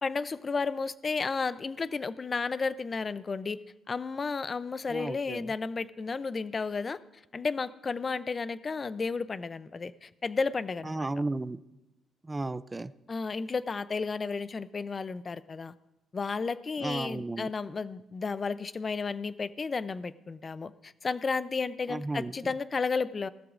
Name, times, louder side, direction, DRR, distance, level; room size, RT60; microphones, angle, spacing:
voice 1, 0.0-3.6 3.9-7.0 7.3-11.1 13.1-15.7 16.1-23.3, left 4 dB, 35° left, 15 dB, 0.5 m, -32 dB
voice 2, 4.9-5.5 10.8-11.6 12.2-12.9 16.8-17.5 21.9-22.3, right 2 dB, 20° right, 14 dB, 0.4 m, -34 dB
19.0 x 13.5 x 2.5 m, 0.98 s
cardioid pair, 90°, 0 cm